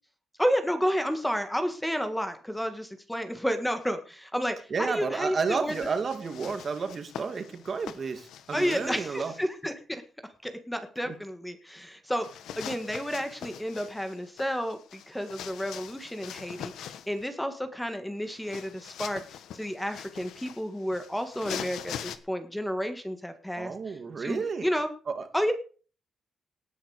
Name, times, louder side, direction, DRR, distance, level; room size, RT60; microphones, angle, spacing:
voice 1, 0.4-5.9 8.5-10.0 10.4-24.9 25.3-25.5, equal, 5° left, 8 dB, 1.6 m, -31 dB
voice 2, 4.7-9.3 11.0-11.2 23.6-24.7 25.1-25.2, right 5 dB, 40° right, 9 dB, 2.3 m, -31 dB
sound 1, 5.7-9.4 12.2-17.2 18.2-22.2, left 9 dB, 90° left, 1.5 m, -43 dB
18.0 x 10.0 x 5.0 m, 0.39 s
cardioid pair, 135°, 0 cm